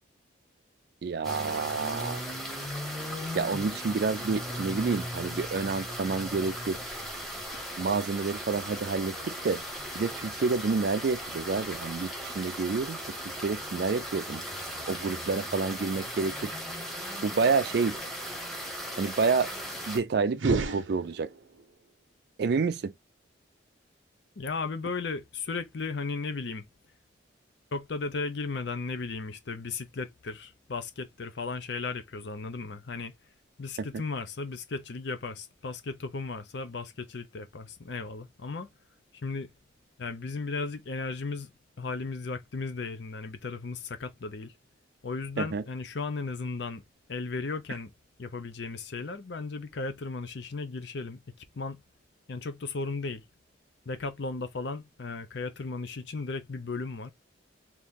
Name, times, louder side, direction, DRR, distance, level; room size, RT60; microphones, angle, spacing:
voice 1, 1.0-2.2 3.3-6.8 7.8-9.6 9.9-13.2 13.4-14.4 14.9-16.5 17.2-18.0 19.0-19.5 19.9-21.3 22.4-22.9 33.8-33.9 45.4-45.6, right 4 dB, 55° right, 0.4 m, -29 dB
sound 1, 1.2-20.0, equal, ahead, 0.9 m, -37 dB
sound 2, 20.3-21.6, right 3 dB, 85° right, 0.7 m, -31 dB
voice 2, 24.4-26.6 27.7-33.1 33.6-38.7 39.2-39.5 40.0-41.5 41.8-44.5 45.0-46.8 47.1-47.9 48.2-51.8 52.3-53.2 53.9-57.1, left 4 dB, 65° left, 0.6 m, -35 dB
3.0 x 2.6 x 3.6 m
head